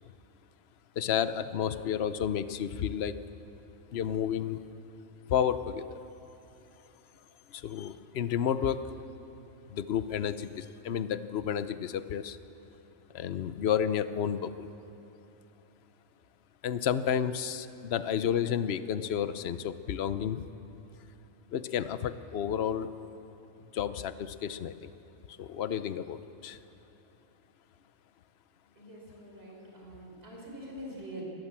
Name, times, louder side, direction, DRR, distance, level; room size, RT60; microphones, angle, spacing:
voice 1, 1.0-3.1 3.9-4.6 5.3-6.0 7.5-8.8 9.7-12.4 13.1-14.7 16.6-20.5 21.5-22.9 23.7-24.7 25.4-26.6, left 8 dB, 55° left, 12 dB, 1.0 m, -31 dB
voice 2, 28.8-31.2, equal, 45° right, -2 dB, 4.8 m, -44 dB
26.5 x 19.5 x 7.4 m, 3.0 s
omnidirectional pair, 1.4 m